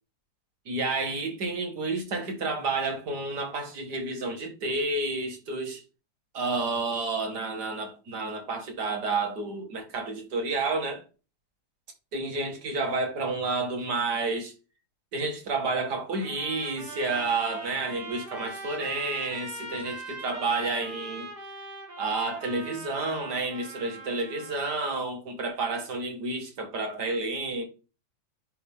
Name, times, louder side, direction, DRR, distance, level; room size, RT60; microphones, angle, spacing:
voice 1, 0.7-5.8 6.3-11.0 12.1-14.5 15.1-21.3 22.0-27.6, right 3 dB, 80° right, 2.5 m, -30 dB
Trumpet, 16.2-24.9, right 2 dB, 45° right, 3.3 m, -41 dB
9.9 x 3.8 x 3.7 m
omnidirectional pair, 1.8 m